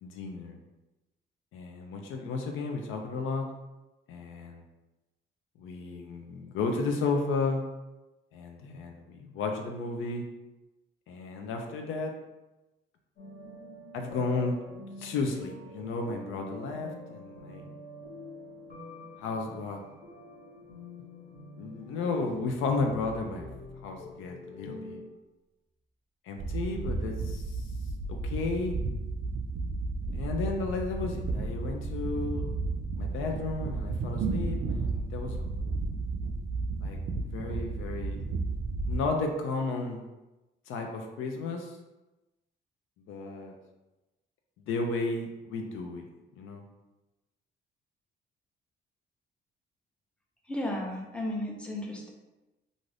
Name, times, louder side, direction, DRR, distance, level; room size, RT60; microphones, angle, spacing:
voice 1, 0.0-0.6 1.5-3.5 4.1-4.6 5.6-7.6 8.3-10.2 11.1-12.1 13.9-14.6 15.0-17.6 19.2-19.9 21.6-23.5 23.8-25.0 26.2-27.7 28.1-28.8 30.1-32.5 33.0-35.4 36.8-38.2 38.9-40.0 40.7-41.8 43.1-43.5 44.7-46.0 46.4-46.6, left 3 dB, 85° left, 3 dB, 0.5 m, -33 dB
sound 1, 13.2-25.1, left 1 dB, 50° left, 1.1 m, -47 dB
sound 2, 21.8-24.8, right 1 dB, 25° left, 1.0 m, -51 dB
sound 3, 26.4-39.0, right 3 dB, 55° right, 0.4 m, -33 dB
voice 2, 50.4-52.1, left 1 dB, 5° left, -1 dB, 0.6 m, -34 dB
2.5 x 2.5 x 3.2 m, 1.0 s
cardioid pair, 90°, 20 cm